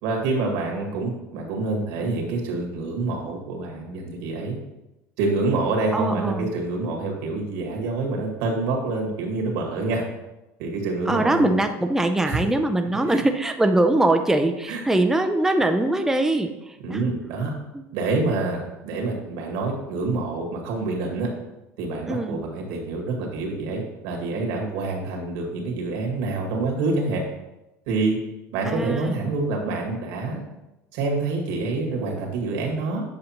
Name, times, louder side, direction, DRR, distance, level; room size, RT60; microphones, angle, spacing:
voice 1, 0.0-4.6 5.2-10.0 10.6-11.5 12.3-12.4 13.1-13.2 14.7-14.8 16.8-17.5 17.9-21.3 21.8-27.2 27.9-28.2 28.5-30.4 30.9-33.0, right 3 dB, 75° right, 0 dB, 1.8 m, -27 dB
voice 2, 5.9-6.5 11.1-17.1 17.7-17.8 22.1-22.5 28.6-29.3, right 1 dB, 5° right, 5 dB, 0.5 m, -22 dB
8.0 x 5.1 x 2.9 m, 0.95 s
supercardioid pair, 95°, 8 cm